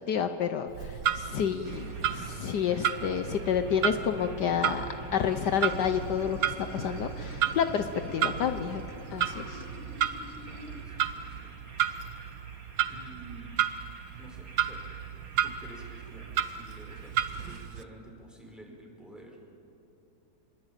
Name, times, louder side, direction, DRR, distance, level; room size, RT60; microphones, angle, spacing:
voice 1, 0.1-4.8 5.1-8.8 9.1-9.6, left 8 dB, 70° left, 8 dB, 1.4 m, -30 dB
Clock, 0.7-17.8, right 10 dB, 85° right, 1.6 m, -33 dB
sound 1, 1.6-17.6, right 2 dB, 50° right, 2.7 m, -46 dB
Water / Sink (filling or washing), 5.2-10.8, equal, 35° right, 2.7 m, -49 dB
voice 2, 10.4-11.5 12.9-13.5 14.2-14.8 15.4-17.2 17.4-19.4, right 1 dB, ahead, -1 dB, 5.4 m, -50 dB
27.5 x 22.0 x 9.1 m, 2.8 s
omnidirectional pair, 1.9 m